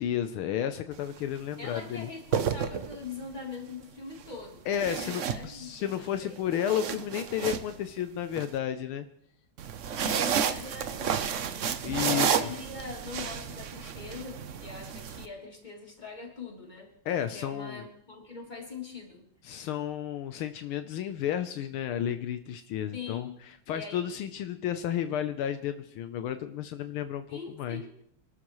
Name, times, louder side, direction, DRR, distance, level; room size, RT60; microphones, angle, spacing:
voice 1, 0.0-2.1 4.7-9.1 11.8-12.5 17.1-17.8 19.4-23.3 23.7-27.8, left 10 dB, 80° left, 9 dB, 1.6 m, -32 dB
sound 1, 0.9-1.2 2.1-3.3 4.7-5.9 6.4-8.5 9.6-15.3, right 7 dB, 75° right, 0.7 m, -31 dB
voice 2, 1.6-6.4 9.9-11.7 12.0-16.9 17.3-19.3 22.9-23.4 23.7-24.1 27.3-27.9, left 4 dB, 20° left, -2 dB, 3.5 m, -42 dB
26.5 x 13.0 x 3.1 m, 0.67 s
omnidirectional pair, 2.3 m